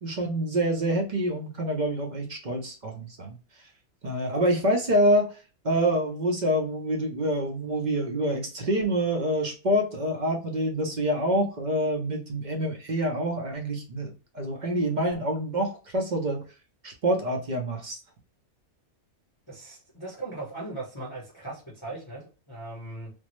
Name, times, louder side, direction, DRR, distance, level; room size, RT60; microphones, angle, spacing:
voice 1, 0.0-3.3 4.0-5.4 5.6-16.4 16.8-18.0, equal, 50° right, 0.5 m, -26 dB
voice 2, 19.5-23.1, right 2 dB, 20° left, 0.7 m, -38 dB
3.4 x 2.0 x 3.0 m
omnidirectional pair, 1.5 m